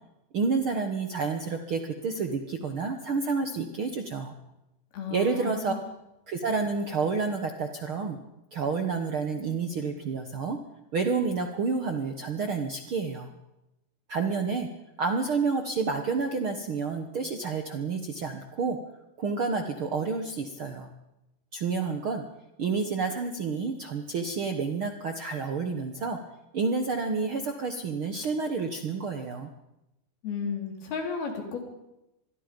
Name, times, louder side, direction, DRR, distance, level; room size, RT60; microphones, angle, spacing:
voice 1, 0.3-4.3 5.1-5.7 6.3-8.2 8.5-10.6 10.9-13.3 14.1-14.7 15.0-18.8 19.2-20.9 21.5-22.2 22.6-26.2 26.5-29.5, right 4 dB, 60° right, 5 dB, 1.4 m, -29 dB
voice 2, 4.9-5.8 30.2-31.6, left 5 dB, 90° left, 3 dB, 5.4 m, -33 dB
26.0 x 22.0 x 5.3 m, 0.91 s
omnidirectional pair, 4.3 m